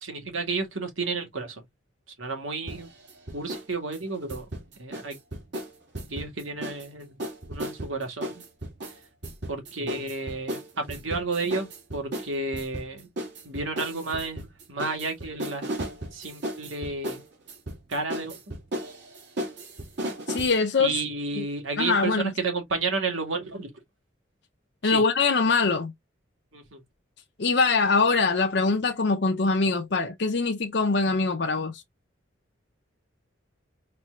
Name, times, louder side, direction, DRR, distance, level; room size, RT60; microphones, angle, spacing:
voice 1, 0.0-1.6 2.2-2.9 3.3-4.4 4.8-5.2 6.1-7.1 7.5-8.4 9.5-13.1 13.4-15.7 16.1-17.2 17.9-18.4 20.8-23.7 24.8-25.0 26.5-26.8, right 3 dB, 90° right, 2.1 m, -31 dB
sound 1, 2.7-3.7 3.9-6.9 7.2-20.6, right 1 dB, 60° right, 2.3 m, -35 dB
voice 2, 20.3-21.0 21.4-21.5 21.8-22.3 24.8-25.9 27.4-31.8, left 4 dB, 60° left, 0.6 m, -23 dB
4.4 x 4.1 x 2.4 m
head